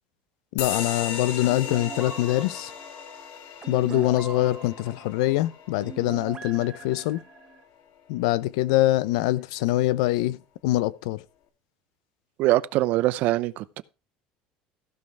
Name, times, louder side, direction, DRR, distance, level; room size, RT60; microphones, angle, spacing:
voice 1, 0.5-2.7 3.7-7.2 8.1-11.2, left 16 dB, 90° left, 0.7 m, -24 dB
sound 1, 0.6-7.6, left 7 dB, 60° left, 2.4 m, -37 dB
sound 2, 1.4-7.6, right 6 dB, 25° right, 0.9 m, -42 dB
voice 2, 12.4-13.8, right 16 dB, 60° right, 0.7 m, -23 dB
15.0 x 5.5 x 4.8 m
cardioid pair, 130°, 3 cm